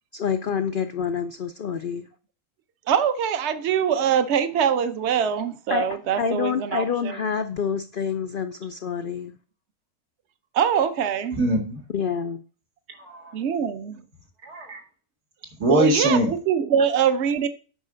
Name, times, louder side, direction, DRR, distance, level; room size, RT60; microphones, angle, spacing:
voice 1, 0.1-2.1 5.7-5.9 6.2-9.4 11.9-12.4, left 6 dB, 75° left, 0.5 m, -27 dB
voice 2, 2.9-7.2 10.5-11.4 13.3-14.0 15.7-17.5, right 8 dB, 55° right, 1.0 m, -23 dB
voice 3, 11.4-11.8 13.0-13.3 14.4-14.8 15.6-16.3, right 1 dB, 90° right, 2.8 m, -22 dB
9.1 x 5.4 x 5.1 m
omnidirectional pair, 1.6 m